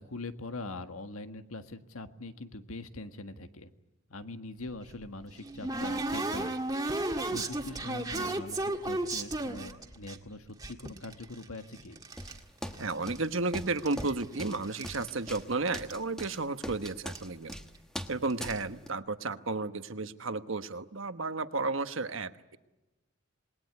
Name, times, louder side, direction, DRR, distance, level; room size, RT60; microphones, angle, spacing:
voice 1, 0.0-3.7 4.1-6.9 7.3-12.0, left 2 dB, 90° left, 8 dB, 1.7 m, -43 dB
sound 1, 4.7-10.2 10.6-12.4 12.7-13.4 13.7-15.0 15.3-15.4 15.7-15.9 16.2-16.3 17.1-17.2 17.5-17.8 18.3-18.6, right 2 dB, 15° right, 1.8 m, -34 dB
sound 2, 12.2-18.9, equal, 5° left, 1.4 m, -42 dB
voice 2, 12.8-17.6 18.1-22.6, right 3 dB, 65° right, 10 dB, 1.2 m, -33 dB
27.5 x 20.5 x 9.7 m, 1.1 s
head